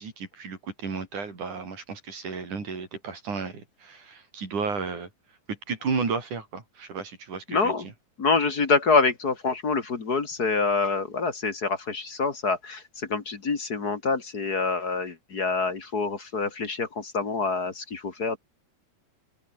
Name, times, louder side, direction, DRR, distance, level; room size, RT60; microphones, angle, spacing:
voice 1, 0.0-5.1 5.5-7.9, right 5 dB, 80° right, 6.5 m, -33 dB
voice 2, 7.5-7.9 8.2-18.4, left 4 dB, 35° left, 2.2 m, -26 dB
open air
omnidirectional pair, 3.5 m